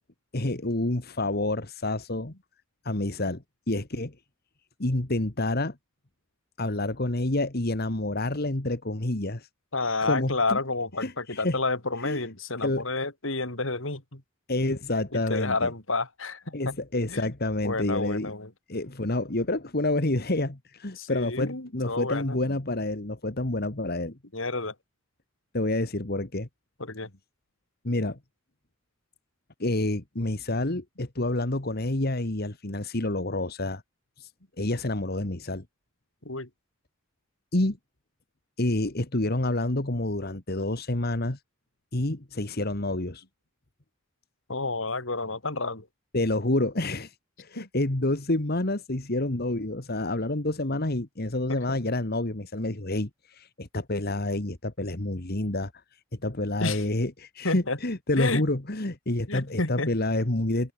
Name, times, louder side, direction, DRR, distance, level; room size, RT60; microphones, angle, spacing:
voice 1, 0.3-2.3 2.8-4.2 4.8-5.8 6.6-9.5 10.0-10.6 11.0-11.6 12.0-12.2 12.6-12.9 14.5-15.7 16.5-18.3 18.7-24.2 25.5-26.5 27.8-28.2 29.6-33.8 34.2-34.3 34.6-35.6 37.5-37.8 38.6-41.4 41.9-43.2 46.1-60.7, left 2 dB, 50° left, 1.9 m, -28 dB
voice 2, 9.7-14.2 15.1-16.7 17.1-17.3 17.6-18.5 21.0-22.5 24.3-24.7 26.8-27.1 36.2-36.5 44.5-45.9 47.6-47.7 51.5-51.8 56.6-56.8 57.4-57.8 58.2-58.4 59.3-59.9, left 3 dB, 70° left, 3.8 m, -30 dB
head